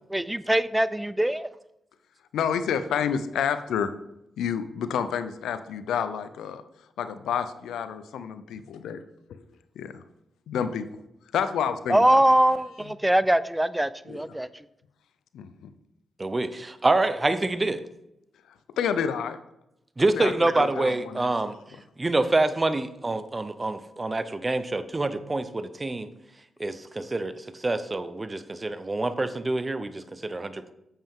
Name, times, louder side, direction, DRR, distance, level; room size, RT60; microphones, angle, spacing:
voice 1, 0.1-1.5 11.9-14.5, right 1 dB, 10° right, 16 dB, 0.5 m, -22 dB
voice 2, 2.3-3.9 4.4-6.6 7.0-9.0 9.8-10.0 10.5-10.8 11.3-12.2 14.1-14.2 15.3-15.7 18.8-19.4 20.1-21.3, left 7 dB, 80° left, 11 dB, 0.6 m, -29 dB
voice 3, 16.2-17.8 20.0-21.6 22.0-26.1 26.6-30.7, right 2 dB, 30° right, 12 dB, 0.8 m, -26 dB
8.6 x 7.3 x 3.7 m, 0.85 s
supercardioid pair, 40°, 0 cm